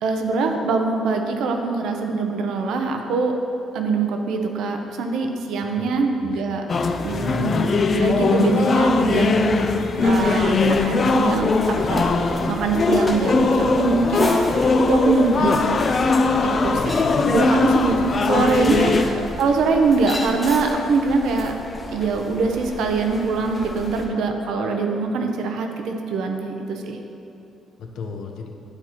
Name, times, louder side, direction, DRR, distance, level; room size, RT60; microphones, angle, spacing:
voice 1, 0.0-3.4 3.7-6.6 7.0-9.7 10.0-14.3 14.9-15.8 16.4-17.0 17.3-21.5 21.9-27.0, right 4 dB, 75° right, 4 dB, 0.6 m, -23 dB
voice 2, 5.8-6.3 12.7-13.0 16.7-17.4 19.0-19.6 21.1-21.2 27.8-28.5, left 4 dB, 70° left, 3 dB, 0.7 m, -36 dB
sound 1, 6.7-19.0, left 3 dB, 35° left, 0.3 m, -20 dB
sound 2, 10.0-24.1, left 1 dB, 15° left, 0.7 m, -34 dB
11.5 x 4.4 x 2.9 m, 2.8 s
cardioid pair, 135°, 0 cm